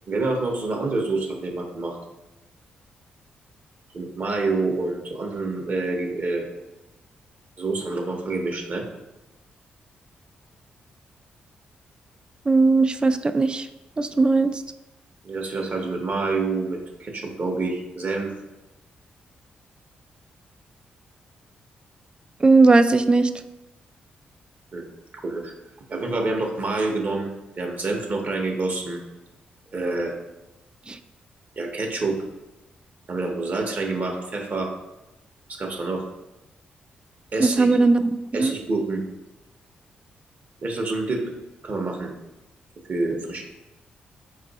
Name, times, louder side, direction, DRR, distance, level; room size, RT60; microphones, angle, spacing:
voice 1, 0.1-2.0 3.9-6.5 7.6-8.9 15.2-18.3 24.7-24.8 25.1-25.5 25.9-27.3 27.6-29.0 29.7-30.1 31.6-32.2 33.1-34.7 35.6-36.0 37.3-37.7 38.3-39.0 40.6-41.2 41.6-42.1 42.9-43.4, right 3 dB, 50° right, 2 dB, 0.9 m, -27 dB
voice 2, 12.5-13.7 14.0-14.5 22.4-23.3 30.9-31.0 37.4-38.5, right 3 dB, 25° right, 10 dB, 0.3 m, -18 dB
4.6 x 2.4 x 3.9 m, 1.0 s
cardioid pair, 60°, 3 cm